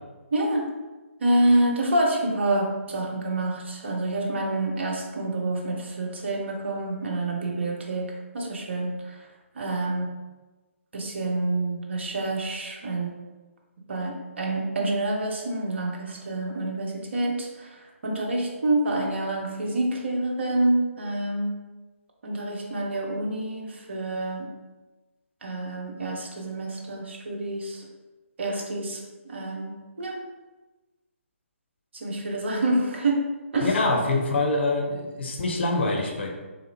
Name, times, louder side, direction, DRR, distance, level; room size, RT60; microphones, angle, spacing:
voice 1, 0.3-0.7 1.2-9.3 9.5-10.1 10.9-13.2 13.9-21.6 22.2-24.5 25.4-27.9 28.4-30.2 31.9-33.2 33.5-33.8, right 1 dB, 55° right, -1 dB, 0.9 m, -27 dB
voice 2, 33.6-36.3, left 2 dB, 50° left, 2 dB, 0.7 m, -25 dB
3.8 x 2.9 x 2.8 m, 1.2 s
figure-of-eight pair, 140°, 7 cm